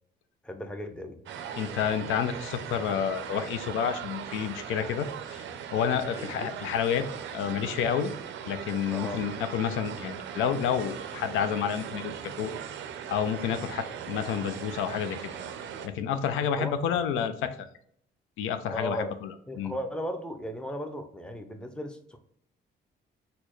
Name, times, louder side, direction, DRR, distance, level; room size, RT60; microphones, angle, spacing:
voice 1, 0.4-1.2 5.8-6.5 8.9-9.2 16.6-16.8 18.7-19.2 19.5-22.2, equal, 5° left, 6 dB, 0.5 m, -36 dB
sound 1, 1.3-15.9, right 8 dB, 70° right, 0.5 m, -39 dB
voice 2, 1.6-5.4 5.7-7.1 7.3-8.1 8.5-12.5 13.1-15.2 15.8-17.5 18.4-19.7, left 8 dB, 85° left, 10 dB, 0.4 m, -29 dB
4.1 x 2.2 x 3.0 m, 0.66 s
cardioid pair, 90°, 20 cm